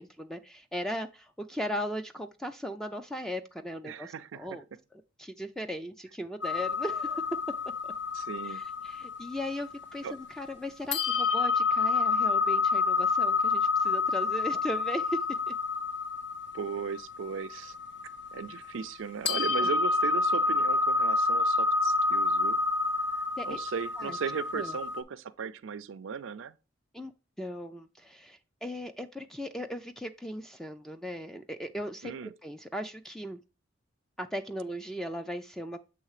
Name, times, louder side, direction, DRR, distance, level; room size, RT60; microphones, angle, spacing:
voice 1, 0.0-4.6 5.2-7.3 7.8-7.9 8.4-15.6 19.6-19.7 23.4-23.6 24.0-24.2 24.5-24.8 26.9-27.1 27.4-33.4 34.2-35.8, equal, ahead, 0.3 m, -37 dB
voice 2, 3.8-4.6 8.1-8.6 10.0-10.1 16.5-17.8 18.3-22.6 23.1-26.6 32.0-32.3, right 6 dB, 75° right, 0.4 m, -37 dB
sound 1, 6.4-10.5 10.9-19.0 19.3-25.0, left 4 dB, 60° left, 0.7 m, -28 dB
7.6 x 3.2 x 4.8 m
head